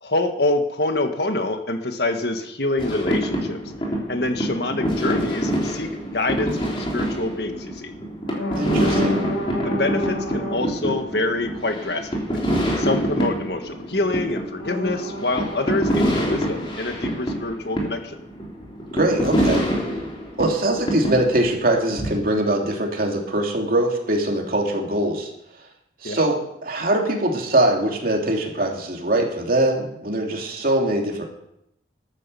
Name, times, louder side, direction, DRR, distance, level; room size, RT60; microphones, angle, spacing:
voice 1, 0.0-3.6 4.1-7.9 9.6-12.4 12.8-18.2 26.0-26.3, left 2 dB, 65° left, 6 dB, 1.7 m, -26 dB
sound 1, 2.8-22.1, equal, 30° left, 3.2 m, -26 dB
sound 2, 5.3-5.5 6.5-6.7 8.3-10.7 14.6-16.6, left 1 dB, 90° left, 4.3 m, -29 dB
voice 2, 8.6-9.2 18.9-19.6 20.4-25.3 26.0-31.2, right 1 dB, 55° right, 0 dB, 3.0 m, -22 dB
13.5 x 9.9 x 7.0 m, 0.79 s
head